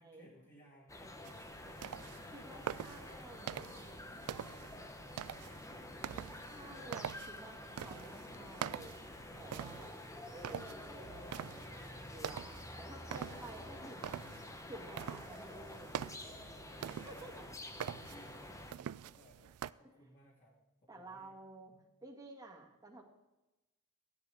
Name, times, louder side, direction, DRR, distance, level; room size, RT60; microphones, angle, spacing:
voice 1, 0.0-5.4 16.7-18.5 18.8-21.3 21.7-21.8, equal, 35° left, -5 dB, 2.3 m, -63 dB
sound 1, 0.9-18.7, left 1 dB, 15° left, 0.8 m, -49 dB
sound 2, 1.2-19.7, right 9 dB, 80° right, 0.3 m, -46 dB
voice 2, 2.3-3.8 6.4-8.9 9.4-9.9 10.3-14.3 14.7-16.0 16.8-17.5 20.9-21.7 22.0-23.0, right 2 dB, 15° right, 1 dB, 1.8 m, -52 dB
15.5 x 11.0 x 3.5 m, 1.0 s
head